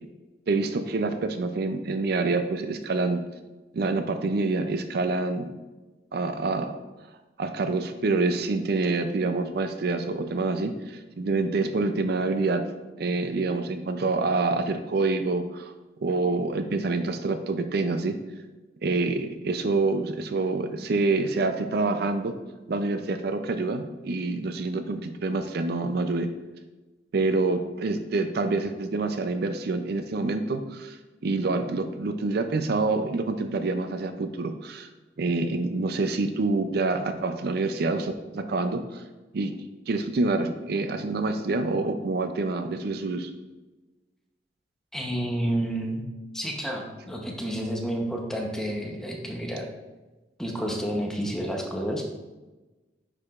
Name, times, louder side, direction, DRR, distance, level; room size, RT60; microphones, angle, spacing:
voice 1, 0.5-3.2 3.7-5.5 6.1-6.8 7.4-12.6 13.0-15.7 16.0-18.2 18.8-22.3 22.7-26.3 27.1-34.9 35.2-39.0 39.3-39.6 39.9-43.3, right 3 dB, 60° right, 8 dB, 0.5 m, -27 dB
voice 2, 44.9-46.0 46.3-49.7 50.4-52.0, equal, 5° left, 0 dB, 0.8 m, -30 dB
9.5 x 4.8 x 2.4 m, 1.1 s
head